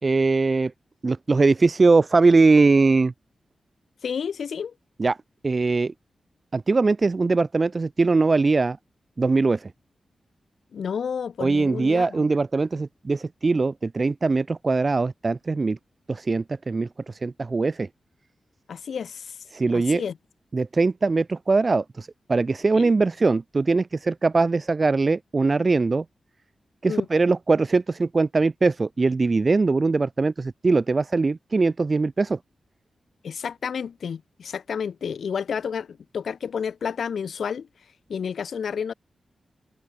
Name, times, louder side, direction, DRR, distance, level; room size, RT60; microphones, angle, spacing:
voice 1, 0.0-0.7 1.0-3.1 5.0-5.2 5.4-5.9 6.5-8.8 9.2-9.7 11.4-15.8 16.1-17.9 19.5-20.0 20.5-26.0 26.8-32.4, right 3 dB, 40° right, 0.7 m, -21 dB
voice 2, 4.0-4.7 10.7-12.3 18.7-19.4 19.7-20.1 22.7-22.9 26.9-27.1 33.2-37.7 38.1-38.9, left 7 dB, 80° left, 0.8 m, -30 dB
cardioid pair, 75°, 0 cm